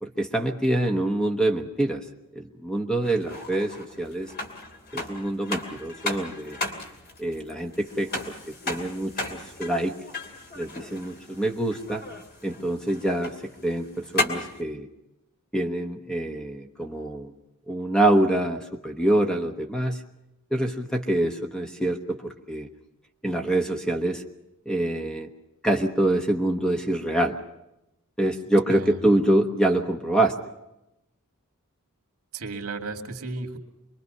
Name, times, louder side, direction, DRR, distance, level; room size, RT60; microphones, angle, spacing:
voice 1, 0.0-2.0 2.3-4.3 4.9-6.6 7.2-8.1 8.5-9.9 10.5-12.1 12.4-14.9 15.5-17.3 17.7-20.0 20.5-22.7 23.2-24.2 24.6-25.3 25.6-27.4 28.2-30.4, right 1 dB, 5° left, 4 dB, 1.1 m, -25 dB
sound 1, 3.0-14.6, left 2 dB, 45° left, 2.8 m, -35 dB
voice 2, 32.3-33.6, right 3 dB, 70° right, 3 dB, 2.4 m, -34 dB
26.0 x 22.5 x 5.5 m, 0.91 s
head